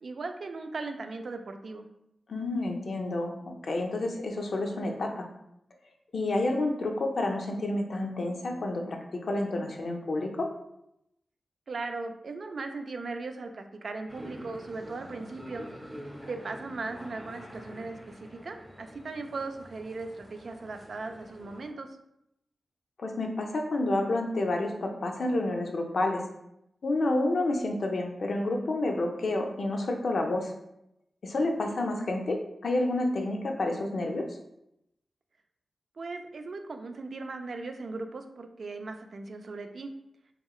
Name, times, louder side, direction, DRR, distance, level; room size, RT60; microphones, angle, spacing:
voice 1, 0.0-1.9 11.7-15.6 16.3-18.0 18.4-21.9 36.0-39.9, right 3 dB, 65° right, 6 dB, 0.3 m, -38 dB
voice 2, 2.3-5.3 6.1-10.5 23.0-26.2 26.8-30.5 31.2-34.3, left 2 dB, 70° left, 2 dB, 0.5 m, -29 dB
sound 1, 14.1-21.7, equal, ahead, 0.8 m, -46 dB
2.9 x 2.9 x 2.3 m, 0.81 s
wide cardioid pair, 80°, 0 cm